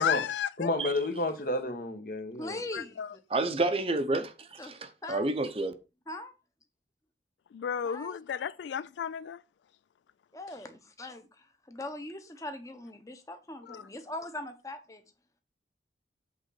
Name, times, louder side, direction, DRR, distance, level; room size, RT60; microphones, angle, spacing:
voice 1, 0.0-0.7 2.7-3.1 7.5-9.4 13.6-13.9, left 8 dB, 85° left, 0.3 m, -33 dB
voice 2, 0.6-2.6, left 2 dB, 50° left, 1.3 m, -31 dB
voice 3, 2.4-3.0 4.6-4.7 5.0-5.3 6.1-6.3 7.8-8.2 10.3-15.0, left 1 dB, 20° left, 1.0 m, -41 dB
voice 4, 3.3-5.7, right 2 dB, 30° right, 0.6 m, -30 dB
7.9 x 3.8 x 5.7 m
head